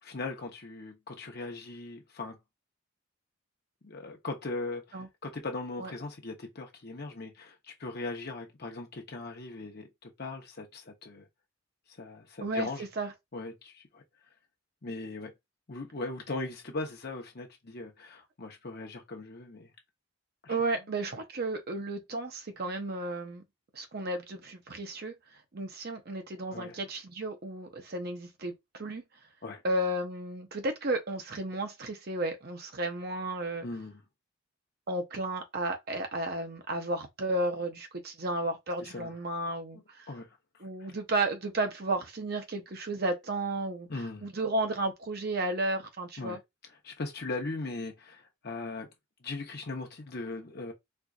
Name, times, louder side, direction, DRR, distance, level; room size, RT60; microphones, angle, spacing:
voice 1, 0.0-2.4 3.8-11.3 11.9-12.9 13.3-14.0 14.8-15.3 15.7-19.7 20.4-20.6 26.5-26.8 29.4-29.6 33.6-34.0 38.8-39.1 39.7-39.8 40.1-40.3 40.5-40.9 43.9-44.3 46.2-46.4 46.7-48.9 49.2-50.7, left 2 dB, 50° left, 0.9 m, -39 dB
voice 2, 20.5-23.4 23.7-25.1 25.5-29.0 29.6-33.6 34.9-40.1 40.6-43.9 44.2-46.4, right 2 dB, 45° right, 0.7 m, -33 dB
4.4 x 2.5 x 2.4 m
head